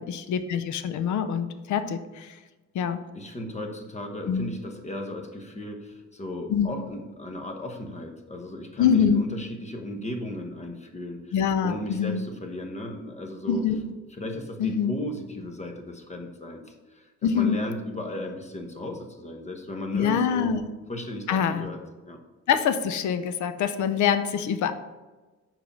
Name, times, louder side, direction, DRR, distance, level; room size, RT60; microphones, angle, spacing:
voice 1, 0.0-2.4 2.7-3.0 4.3-4.5 6.5-6.7 8.8-9.2 11.3-12.2 13.5-13.9 14.6-14.9 17.2-17.6 19.9-20.6 21.3-21.7 22.5-24.7, left 7 dB, 70° left, 11 dB, 0.7 m, -25 dB
voice 2, 3.1-11.3 11.6-13.6 14.2-20.6 20.9-21.8 22.1-22.2, left 1 dB, 20° left, 4 dB, 1.1 m, -36 dB
5.9 x 4.8 x 5.3 m, 1.2 s
cardioid pair, 90°, 30 cm